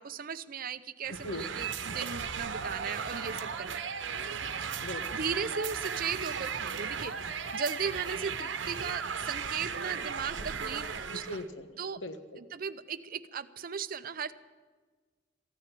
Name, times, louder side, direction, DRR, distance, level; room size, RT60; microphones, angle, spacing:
voice 1, 0.0-3.9 4.8-11.2 11.8-12.0 12.4-14.3, right 6 dB, 50° right, 14 dB, 0.6 m, -37 dB
sound 1, 1.0-11.5, right 6 dB, 85° right, 0.9 m, -36 dB
voice 2, 11.1-11.7 12.0-12.4, left 1 dB, 75° left, 8 dB, 1.3 m, -39 dB
15.0 x 10.0 x 9.1 m, 1.4 s
head